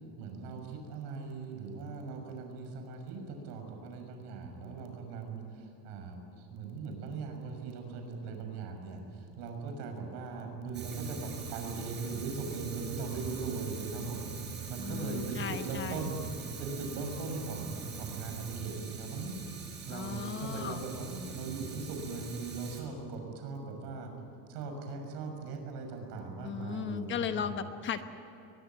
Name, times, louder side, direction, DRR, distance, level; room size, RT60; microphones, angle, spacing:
voice 1, 0.2-24.1 24.5-27.5, right 4 dB, 60° right, 4 dB, 6.3 m, -40 dB
Fire, 10.7-22.8, right 5 dB, 25° right, 4.5 m, -42 dB
voice 2, 14.8-16.1 19.9-20.9 26.4-28.1, left 7 dB, 25° left, 9 dB, 1.1 m, -36 dB
22.5 x 21.5 x 9.5 m, 2.8 s
cardioid pair, 165°, 46 cm